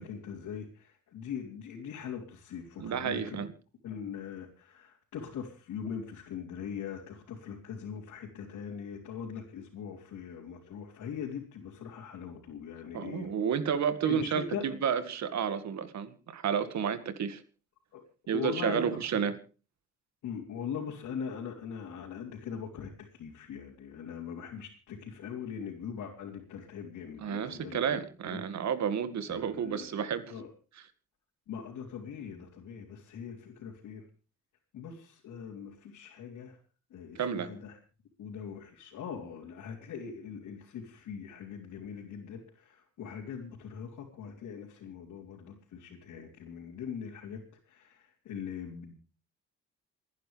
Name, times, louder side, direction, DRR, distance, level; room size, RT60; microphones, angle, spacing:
voice 1, 0.0-3.4 3.8-13.3 14.0-14.7 17.9-18.0 18.3-19.0 20.2-28.0 28.3-28.4 29.3-30.5 31.5-34.0 34.7-36.6 36.9-37.7 38.2-48.9, left 7 dB, 75° left, 3.8 m, -41 dB
voice 2, 2.8-3.5 12.9-17.4 18.3-19.4 27.2-30.3 37.2-37.5, right 7 dB, 65° right, 2.1 m, -31 dB
28.5 x 10.5 x 3.4 m
cardioid pair, 90°, 30 cm